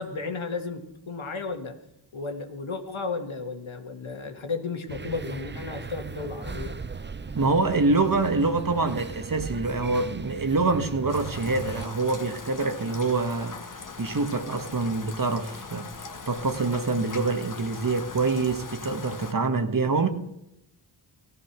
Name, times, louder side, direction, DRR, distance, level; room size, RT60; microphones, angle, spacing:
voice 1, 0.0-1.7 2.1-6.8, left 4 dB, 70° left, 2.1 m, -33 dB
sound 1, 4.9-11.9, right 4 dB, 25° right, 0.7 m, -37 dB
voice 2, 7.3-13.6 14.0-15.9 16.3-20.1, right 3 dB, 40° right, 1.7 m, -25 dB
Rain, 11.1-19.3, left 4 dB, 40° left, 1.4 m, -41 dB
17.5 x 13.5 x 6.1 m
wide cardioid pair, 80°, 49 cm